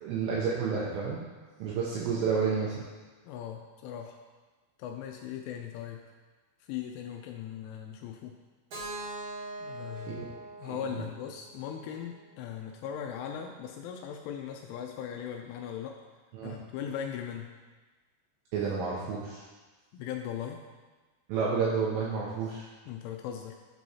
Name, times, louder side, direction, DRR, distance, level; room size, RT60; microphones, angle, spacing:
voice 1, 0.0-1.2 1.6-2.8 10.1-10.3 10.7-11.0 16.3-16.6 18.5-19.4 21.3-22.7, right 5 dB, 80° right, -4 dB, 2.6 m, -30 dB
voice 2, 3.3-4.2 4.8-6.0 6.7-8.4 9.6-10.3 10.6-16.0 16.4-17.5 19.9-20.6 22.9-23.5, left 9 dB, 85° left, 2 dB, 2.9 m, -39 dB
Keyboard (musical), 8.7-12.6, right 2 dB, 65° right, 1.5 m, -43 dB
11.0 x 4.5 x 2.8 m, 1.3 s
omnidirectional pair, 5.9 m